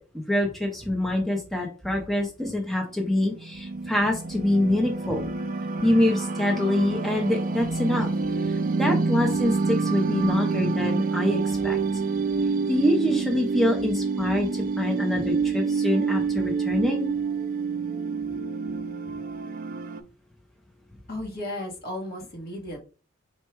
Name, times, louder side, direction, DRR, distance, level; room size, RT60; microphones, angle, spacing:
voice 1, 0.1-5.2 5.8-8.1 8.8-11.8 12.7-17.1, left 1 dB, ahead, 0 dB, 0.5 m, -25 dB
sound 1, 3.0-20.0, right 4 dB, 45° right, 0.4 m, -27 dB
voice 2, 21.1-22.8, left 1 dB, 50° left, 0 dB, 1.2 m, -34 dB
4.4 x 2.2 x 4.4 m, 0.37 s
head